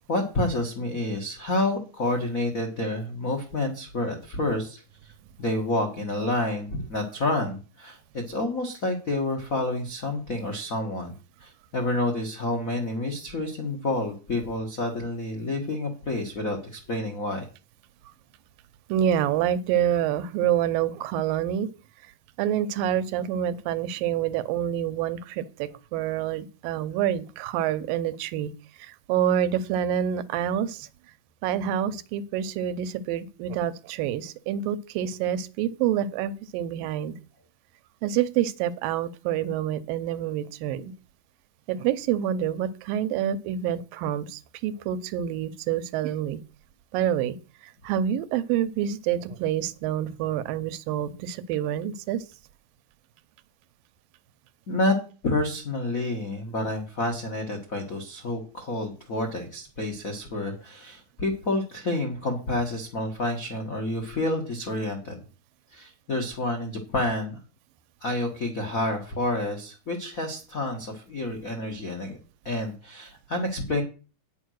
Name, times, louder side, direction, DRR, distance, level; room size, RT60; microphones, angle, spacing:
voice 1, 0.1-4.8 5.4-17.4 54.7-55.0 55.2-65.2 65.7-67.4 68.0-72.2 72.4-73.8, left 2 dB, 65° left, 2 dB, 0.8 m, -29 dB
voice 2, 18.9-21.7 22.4-28.5 28.8-30.9 31.4-37.1 38.0-40.9 41.7-46.4 46.9-47.4 47.6-52.2, right 10 dB, 90° right, 14 dB, 2.5 m, -27 dB
9.2 x 7.0 x 6.3 m, 0.35 s
omnidirectional pair, 3.9 m